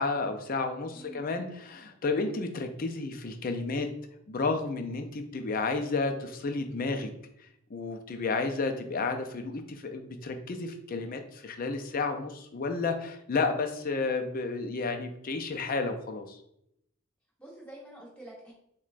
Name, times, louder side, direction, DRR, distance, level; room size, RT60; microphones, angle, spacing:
voice 1, 0.0-3.9 4.3-7.1 7.7-16.4, left 3 dB, 40° left, 6 dB, 0.4 m, -31 dB
voice 2, 0.9-1.2 8.1-8.4 17.4-18.5, right 1 dB, 5° left, -5 dB, 1.0 m, -47 dB
6.0 x 2.2 x 2.5 m, 0.75 s
head